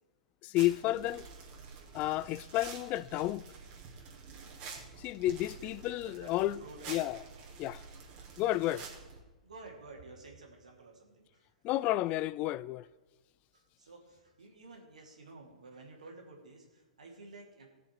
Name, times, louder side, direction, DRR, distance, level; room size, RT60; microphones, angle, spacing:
voice 1, 0.4-1.3 1.9-3.4 5.0-6.6 6.9-7.2 7.6-7.8 8.4-8.8 11.6-12.9, left 15 dB, 35° left, 0.3 m, -31 dB
sound 1, 0.5-9.2, right 5 dB, 45° right, 3.1 m, -49 dB
voice 2, 6.6-7.0 9.4-11.5 13.5-17.7, right 3 dB, 80° right, 3.0 m, -52 dB
18.5 x 6.8 x 4.6 m
hypercardioid pair, 105°, 4 cm